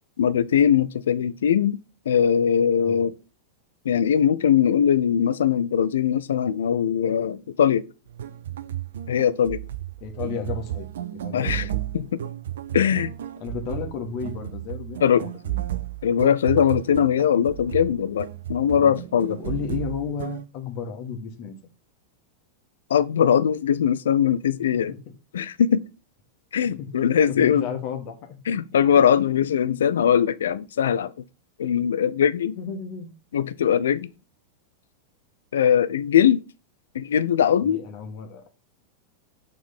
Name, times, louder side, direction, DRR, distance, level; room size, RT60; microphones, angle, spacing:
voice 1, 0.2-1.8 2.1-3.1 3.8-7.9 9.1-9.6 11.3-11.7 11.9-12.2 12.7-13.1 15.0-15.2 16.0-19.4 22.9-24.9 25.3-25.8 26.5-27.7 28.5-31.1 31.6-32.6 33.3-34.1 35.5-36.4 36.9-37.8, left 8 dB, 65° left, 0.4 m, -21 dB
sound 1, 8.1-20.4, right 13 dB, 60° right, 0.5 m, -33 dB
voice 2, 10.0-10.9 11.2-11.8 13.4-15.6 18.7-18.9 19.3-21.6 24.7-25.0 26.6-26.9 27.2-28.4 32.5-33.1 37.6-38.5, left 6 dB, 45° left, 1.4 m, -33 dB
6.5 x 3.6 x 5.4 m
figure-of-eight pair, 90°, 0 cm